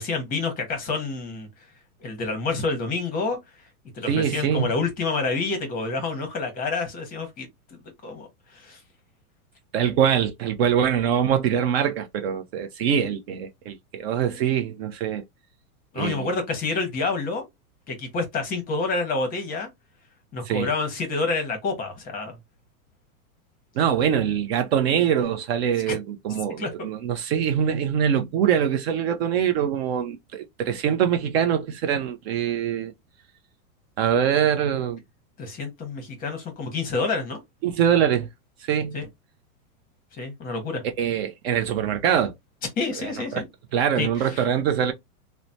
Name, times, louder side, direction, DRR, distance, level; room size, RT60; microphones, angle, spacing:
voice 1, 0.0-1.5 2.0-3.4 3.9-8.3 8.5-8.8 15.9-17.4 17.9-19.7 20.3-22.3 25.9-26.0 26.6-26.7 35.4-37.4 38.9-39.1 40.1-40.8 42.8-43.4 44.0-44.5, left 3 dB, 20° left, 0.7 m, -28 dB
voice 2, 4.1-4.8 9.7-15.2 16.0-16.3 20.4-20.7 23.8-32.9 34.0-35.0 37.6-38.3 38.6-39.0 41.0-42.3 43.0-43.4 43.7-44.9, right 8 dB, 45° right, 0.5 m, -23 dB
3.1 x 2.0 x 2.6 m
supercardioid pair, 150°, 44 cm